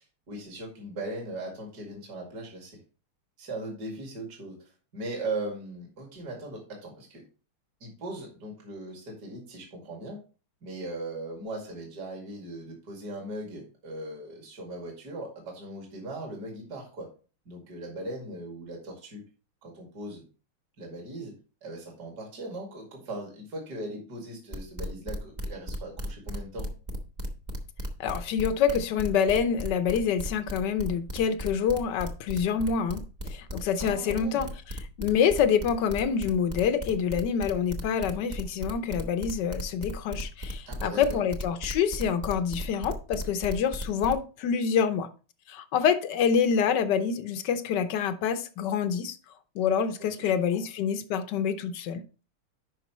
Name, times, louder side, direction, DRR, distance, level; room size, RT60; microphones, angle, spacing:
voice 1, 0.0-2.8 3.4-4.6 4.9-7.2 7.8-10.2 10.6-17.1 17.5-19.2 19.6-20.2 20.8-26.7 33.8-34.5 40.7-41.2 50.0-50.6, right 2 dB, 45° right, 2.6 m, -39 dB
sound 1, 24.5-44.1, equal, 30° right, 0.8 m, -35 dB
voice 2, 28.0-33.0 33.3-34.5 35.0-45.1 45.5-49.2 49.5-52.0, left 7 dB, 65° left, 1.2 m, -26 dB
10.5 x 5.3 x 3.1 m
omnidirectional pair, 2.3 m